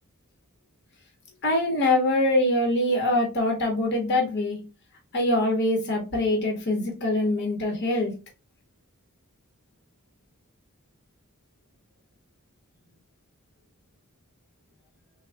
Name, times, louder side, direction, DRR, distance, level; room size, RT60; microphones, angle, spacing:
voice 1, 1.4-4.6 5.1-8.1, left 1 dB, 55° left, 1 dB, 0.8 m, -24 dB
3.5 x 2.1 x 3.2 m, 0.30 s
head